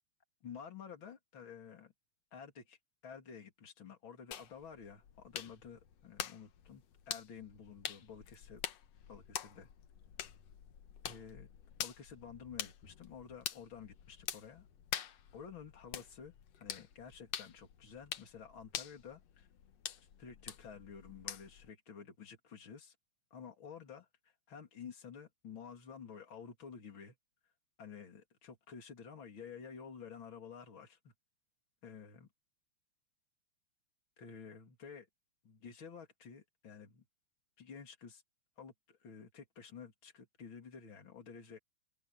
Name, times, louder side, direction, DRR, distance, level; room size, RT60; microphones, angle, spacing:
voice 1, 0.4-1.9 2.3-2.8 3.0-8.6 9.1-9.7 11.0-11.5 11.8-14.7 15.3-19.5 20.2-23.0 23.3-24.1 24.5-27.2 27.8-31.1 31.8-32.3 34.2-35.1 35.4-37.0 37.6-38.2 38.6-41.6, left 6 dB, 40° left, 3.7 m, -51 dB
sound 1, 4.3-21.7, left 10 dB, 65° left, 2.3 m, -46 dB
omnidirectional pair, 3.3 m